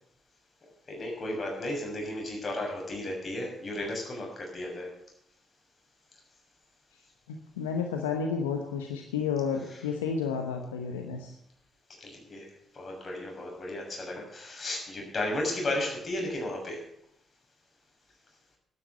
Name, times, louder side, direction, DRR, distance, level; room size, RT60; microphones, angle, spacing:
voice 1, 0.9-4.9 12.0-12.5 12.7-16.8, left 1 dB, 40° left, 0 dB, 6.7 m, -34 dB
voice 2, 7.3-11.4, left 6 dB, 85° left, 4 dB, 1.0 m, -31 dB
12.0 x 9.7 x 8.3 m, 0.73 s
hypercardioid pair, 40°, 0 cm